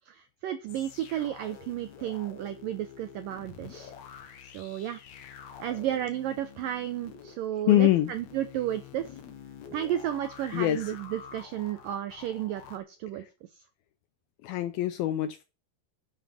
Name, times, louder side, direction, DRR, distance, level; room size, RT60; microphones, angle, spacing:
voice 1, 0.1-3.9 4.5-5.0 5.6-9.1 9.7-13.3, right 11 dB, 85° right, 9 dB, 1.9 m, -33 dB
sound 1, 0.7-12.8, left 8 dB, 60° left, 1.9 m, -48 dB
voice 2, 7.6-8.1 10.5-11.0 14.4-15.4, left 14 dB, 80° left, 12 dB, 2.2 m, -24 dB
10.0 x 7.5 x 7.3 m, 0.31 s
omnidirectional pair, 5.0 m